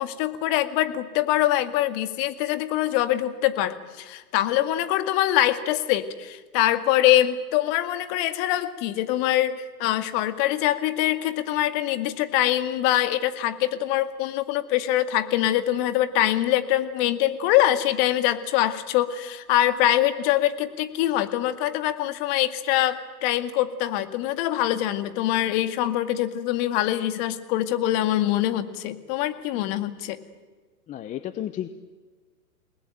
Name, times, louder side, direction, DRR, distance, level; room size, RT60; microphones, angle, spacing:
voice 1, 0.0-30.2, left 13 dB, 35° left, 10 dB, 2.1 m, -24 dB
voice 2, 30.9-31.7, left 12 dB, 15° left, 11 dB, 0.8 m, -32 dB
29.5 x 20.0 x 9.2 m, 1.4 s
hypercardioid pair, 130°, 49 cm